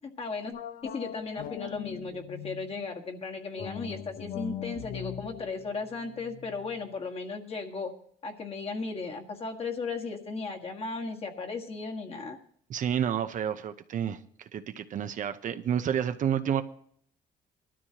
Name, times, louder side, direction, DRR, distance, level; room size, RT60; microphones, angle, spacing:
voice 1, 0.2-0.5 0.8-7.9 8.2-12.4, left 4 dB, 35° left, 3 dB, 1.7 m, -36 dB
sound 1, 0.5-2.8 3.5-6.9, left 10 dB, 55° left, 0.7 m, -41 dB
voice 2, 12.7-16.6, right 9 dB, 50° right, 9 dB, 0.7 m, -30 dB
20.0 x 12.5 x 2.9 m, 0.64 s
cardioid pair, 110°, 17 cm